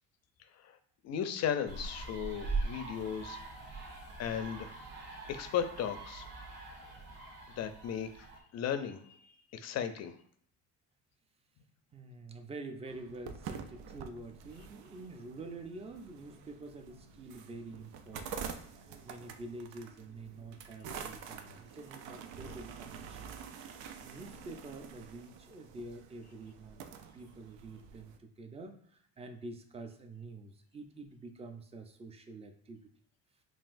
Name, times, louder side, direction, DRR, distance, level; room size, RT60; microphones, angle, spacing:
voice 1, 0.4-0.8 1.0-3.4 4.2-4.7 5.3-6.3 6.8-6.9 7.6-8.3 8.5-10.2, left 8 dB, 45° left, 9 dB, 0.5 m, -36 dB
sound 1, 1.7-8.4, right 3 dB, 70° right, 1.3 m, -41 dB
voice 2, 11.9-18.4 18.8-23.3 24.0-32.9, right 2 dB, 15° right, 6 dB, 0.5 m, -47 dB
sound 2, 12.9-28.2, right 6 dB, 90° right, 0.6 m, -47 dB
5.6 x 2.4 x 2.5 m, 0.62 s
cardioid pair, 110°, 38 cm